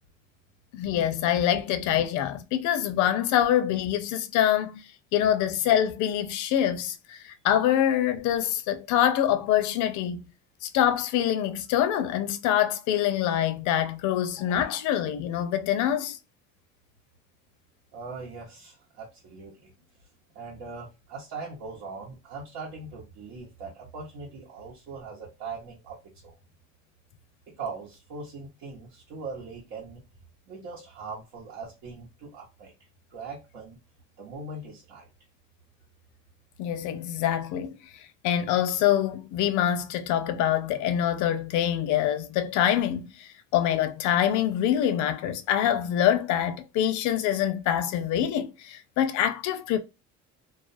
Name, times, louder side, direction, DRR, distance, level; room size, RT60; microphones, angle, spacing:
voice 1, 0.7-4.7 5.1-10.3 10.6-16.2 36.6-37.7 38.2-49.8, left 10 dB, 70° left, 0.5 m, -25 dB
voice 2, 17.9-19.7 20.3-26.0 26.2-26.3 27.5-30.0 30.5-32.7 33.1-33.8 34.2-35.1, right 4 dB, 85° right, 0.9 m, -40 dB
2.4 x 2.1 x 2.5 m
cardioid pair, 130°, 30 cm